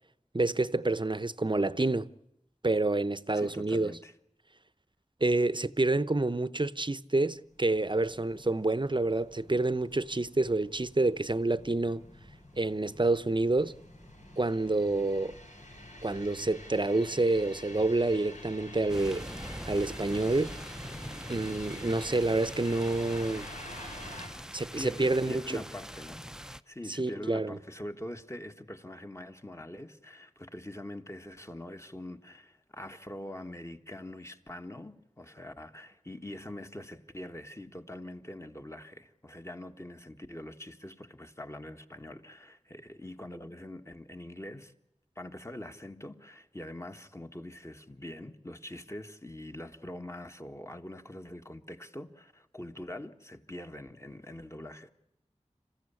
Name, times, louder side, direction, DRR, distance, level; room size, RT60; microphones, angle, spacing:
voice 1, 0.3-2.1 2.6-3.9 5.2-12.0 12.6-13.7 14.4-15.4 16.0-19.3 19.7-20.5 21.3-23.5 24.5-25.6 27.0-27.6, right 2 dB, 40° right, 0.8 m, -28 dB
voice 2, 3.3-4.1 24.7-44.7 45.1-54.9, left 1 dB, 25° left, 1.7 m, -44 dB
sound 1, 7.5-24.3, left 1 dB, 85° left, 7.9 m, -48 dB
suburban rain, 18.9-26.6, equal, 5° right, 0.7 m, -43 dB
27.0 x 15.0 x 8.5 m
wide cardioid pair, 45°, 12 cm